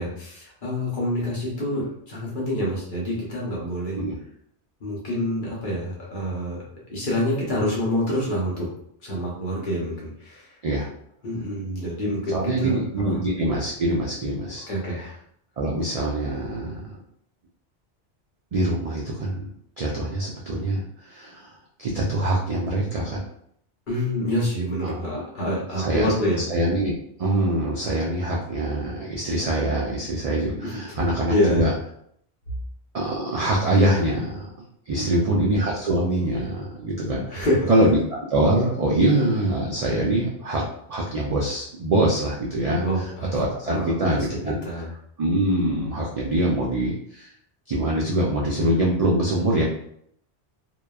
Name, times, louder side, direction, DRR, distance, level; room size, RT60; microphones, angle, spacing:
voice 1, 0.0-4.0 4.8-6.6 6.9-8.7 9.0-10.6 11.2-13.2 14.7-15.2 23.9-26.4 30.6-31.0 31.3-31.7 35.0-35.3 37.3-37.7 42.8-43.3 43.7-44.9, equal, 50° left, -5 dB, 0.9 m, -27 dB
voice 2, 12.3-14.7 15.6-17.0 18.5-19.5 19.8-21.5 21.8-23.2 24.8-25.2 25.8-26.1 26.5-26.9 27.2-31.7 32.9-34.5 34.9-40.6 40.9-43.1 43.3-44.6 45.2-47.3 47.7-49.7, right 1 dB, 75° right, -3 dB, 0.3 m, -24 dB
2.9 x 2.2 x 2.3 m, 0.68 s
omnidirectional pair, 1.2 m